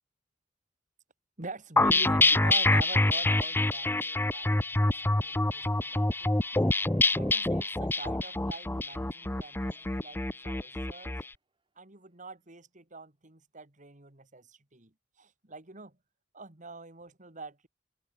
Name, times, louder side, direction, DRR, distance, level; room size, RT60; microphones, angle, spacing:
voice 1, 1.4-6.4 7.2-11.2 11.8-16.0 16.3-17.7, right 3 dB, 45° right, 2.6 m, -45 dB
sound 1, 1.8-11.2, left 2 dB, 10° left, 0.6 m, -26 dB
Cheering / Applause, 4.4-11.0, right 4 dB, 25° right, 7.4 m, -60 dB
open air
head